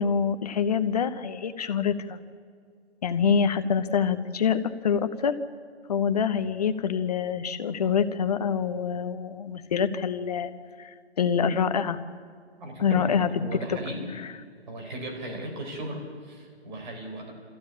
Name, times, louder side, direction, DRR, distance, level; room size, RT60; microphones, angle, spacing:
voice 1, 0.0-2.2 3.0-5.4 5.9-10.5 10.8-10.9 11.2-12.0 12.8-13.3, left 7 dB, 35° left, 10 dB, 1.0 m, -25 dB
voice 2, 12.6-14.1 14.7-17.3, right 1 dB, 45° right, 2 dB, 4.8 m, -36 dB
24.0 x 15.0 x 8.7 m, 2.1 s
hypercardioid pair, 165°, 34 cm